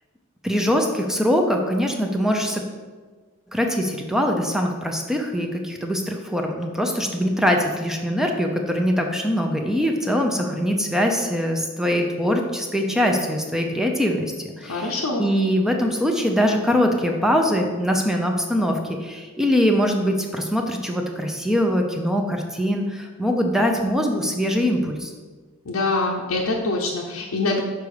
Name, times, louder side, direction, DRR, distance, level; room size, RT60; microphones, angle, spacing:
voice 1, 0.4-2.6 3.5-25.1, equal, ahead, 2 dB, 0.6 m, -22 dB
voice 2, 14.7-15.3 25.7-27.6, left 2 dB, 85° left, -3 dB, 0.8 m, -24 dB
6.7 x 4.7 x 4.9 m, 1.4 s
head